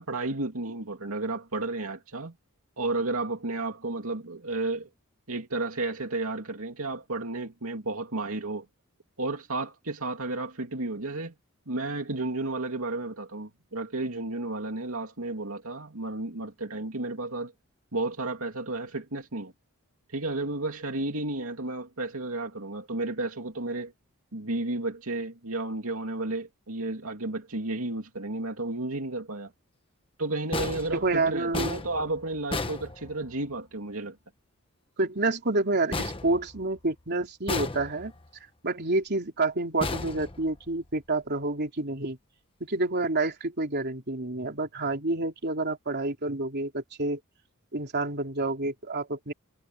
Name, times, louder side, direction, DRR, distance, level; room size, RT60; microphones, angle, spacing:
voice 1, 0.0-2.3 2.8-4.9 5.3-8.7 9.2-11.3 11.7-17.5 17.9-19.5 20.1-23.9 24.3-29.5 30.2-34.2, right 2 dB, 70° right, 2.8 m, -32 dB
sound 1, 30.5-33.6 35.9-37.0 37.5-38.3 39.8-40.9, left 2 dB, 25° left, 1.3 m, -34 dB
voice 2, 30.9-31.8 35.0-38.1 38.6-42.2 42.6-47.2 47.7-49.3, right 2 dB, 50° right, 3.6 m, -28 dB
head